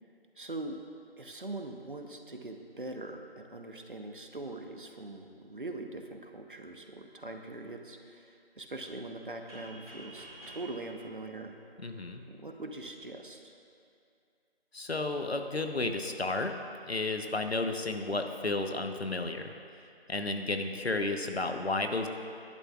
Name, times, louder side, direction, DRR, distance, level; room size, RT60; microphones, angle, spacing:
voice 1, 0.3-0.8 1.2-11.5 12.3-13.6, right 2 dB, 55° right, 4 dB, 1.0 m, -42 dB
sound 1, 9.5-12.2, right 1 dB, 5° right, 1.8 m, -50 dB
voice 2, 11.8-12.2 14.7-16.5 16.9-19.5 20.1-22.1, left 2 dB, 80° left, 5 dB, 1.1 m, -32 dB
18.5 x 11.0 x 2.4 m, 2.4 s
figure-of-eight pair, 170°, 31 cm